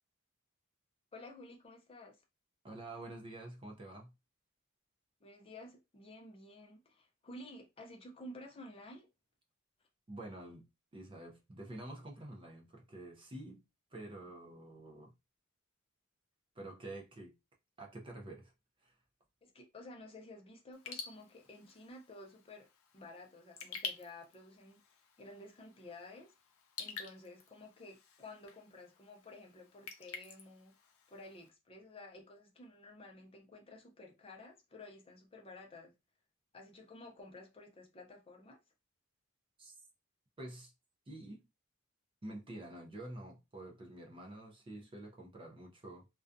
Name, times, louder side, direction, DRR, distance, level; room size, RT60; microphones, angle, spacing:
voice 1, 1.1-2.2 5.2-9.1 19.4-22.7 22.9-24.8 25.2-26.3 26.8-35.9 36.5-38.6, left 2 dB, 25° left, 0.5 m, -53 dB
voice 2, 2.6-4.1 10.1-10.6 10.9-13.6 13.9-15.1 16.6-17.3 17.8-18.5 18.8-18.9 39.6-39.7 40.4-40.7 41.1-41.4 42.2-46.1, right 1 dB, 25° right, 0.5 m, -48 dB
Raindrop / Drip, 20.7-31.5, left 5 dB, 75° left, 0.5 m, -50 dB
2.4 x 2.2 x 2.5 m
head